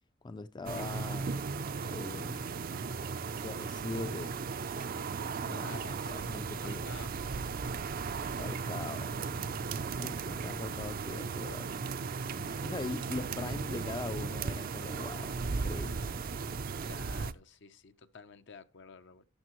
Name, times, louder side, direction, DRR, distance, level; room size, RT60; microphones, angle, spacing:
voice 1, 0.2-1.3 1.8-2.5 3.3-4.4 5.4-6.9 8.3-9.7 10.0-11.9 12.3-16.2, left 3 dB, 25° left, 0.4 m, -42 dB
sound 1, 0.7-17.3, right 4 dB, 50° right, 0.5 m, -36 dB
voice 2, 5.6-5.9 6.6-7.1 16.8-19.2, left 4 dB, 65° left, 0.8 m, -50 dB
12.0 x 7.4 x 3.0 m
head